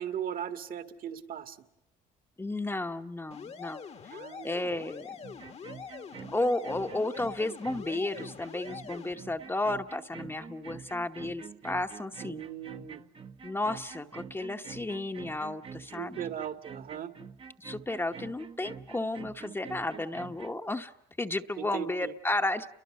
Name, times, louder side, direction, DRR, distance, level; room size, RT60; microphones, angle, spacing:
voice 1, 0.0-1.6 4.1-4.8 12.2-13.0 16.0-17.1 21.6-22.1, right 9 dB, 55° right, 9 dB, 1.9 m, -38 dB
voice 2, 2.4-5.2 6.3-12.4 13.4-16.2 17.6-20.9 21.2-22.7, left 2 dB, 15° left, 5 dB, 1.0 m, -33 dB
sound 1, 3.3-9.1, left 6 dB, 40° left, 1.2 m, -44 dB
sound 2, 5.2-20.5, right 6 dB, 35° right, 0.9 m, -46 dB
30.0 x 22.5 x 6.5 m, 0.87 s
cardioid pair, 110°, 17 cm